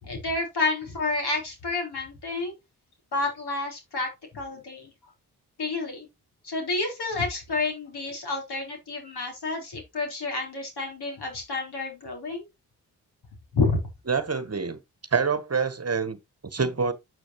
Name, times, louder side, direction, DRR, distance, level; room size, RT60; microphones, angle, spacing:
voice 1, 0.0-2.5 3.1-4.9 5.6-6.1 6.4-12.4 13.5-13.8, left 3 dB, 70° left, 4.3 m, -29 dB
voice 2, 14.1-14.8 15.1-16.9, right 5 dB, 35° right, 1.3 m, -26 dB
12.0 x 6.4 x 3.1 m
supercardioid pair, 45°, 41 cm